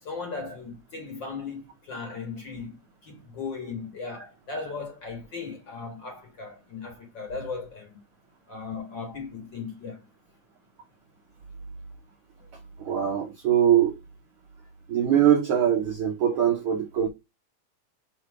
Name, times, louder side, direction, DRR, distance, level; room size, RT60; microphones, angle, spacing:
voice 1, 0.0-8.0 8.5-10.0 12.4-12.5, left 4 dB, 45° left, 1.8 m, -37 dB
voice 2, 12.8-14.0 14.9-17.1, right 10 dB, 70° right, 1.3 m, -22 dB
6.5 x 3.2 x 4.6 m
omnidirectional pair, 3.4 m